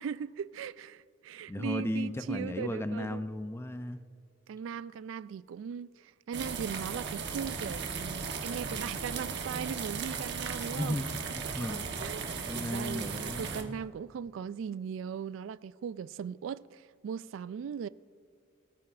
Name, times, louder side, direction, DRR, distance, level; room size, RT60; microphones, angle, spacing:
voice 1, 0.0-3.2 4.5-11.0 11.4-17.9, right 7 dB, 85° right, 0.3 m, -39 dB
voice 2, 1.5-4.0 10.7-11.9 12.4-13.7, left 1 dB, 15° left, 0.5 m, -35 dB
sound 1, 6.3-13.6, right 5 dB, 65° right, 1.1 m, -36 dB
24.5 x 14.0 x 2.5 m
head